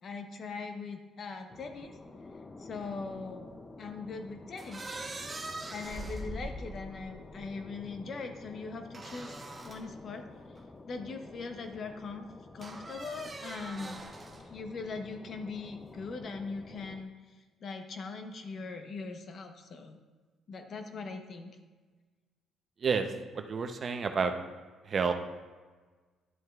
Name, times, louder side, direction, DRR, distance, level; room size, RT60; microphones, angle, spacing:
voice 1, 0.0-2.0 2.6-3.5 3.8-4.9 5.7-10.2 10.9-12.3 12.5-14.0 14.4-17.1 17.6-20.0 20.5-21.6, left 4 dB, 50° left, 6 dB, 0.9 m, -41 dB
sound 1, 1.5-17.0, left 2 dB, 25° left, 0.5 m, -50 dB
sound 2, 4.6-7.4 8.9-9.9 10.6-10.7 12.6-14.5, right 2 dB, 25° right, 1.0 m, -42 dB
voice 2, 23.3-24.3 24.8-25.1, right 5 dB, 45° right, 6 dB, 0.7 m, -29 dB
11.0 x 7.8 x 2.4 m, 1.4 s
cardioid pair, 95°, 0 cm